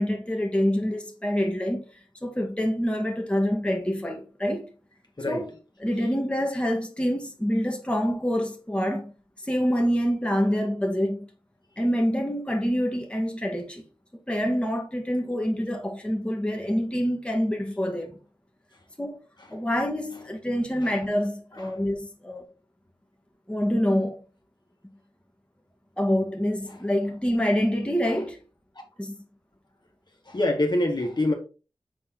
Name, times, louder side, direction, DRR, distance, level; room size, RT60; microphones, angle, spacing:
voice 1, 0.0-1.8 2.2-4.7 5.3-5.5 5.8-9.1 9.4-11.3 11.8-13.8 14.3-18.2 19.0-19.2 19.5-22.4 23.5-24.2 26.0-28.4 29.0-29.1, equal, 10° left, 1.5 m, -26 dB
voice 2, 30.3-31.3, left 1 dB, 50° left, 1.7 m, -25 dB
6.4 x 4.2 x 3.7 m
cardioid pair, 45°, 9 cm